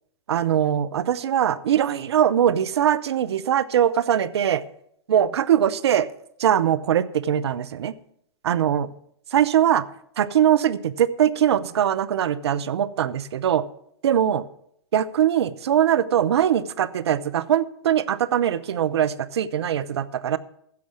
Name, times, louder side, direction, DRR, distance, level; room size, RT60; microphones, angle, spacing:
voice 1, 0.3-4.6 5.1-6.1 6.4-7.9 8.4-8.9 9.3-9.8 10.2-13.6 14.0-14.4 14.9-20.4, right 10 dB, 75° right, 16 dB, 0.7 m, -21 dB
15.5 x 6.3 x 6.1 m, 0.71 s
hypercardioid pair, 115°, 14 cm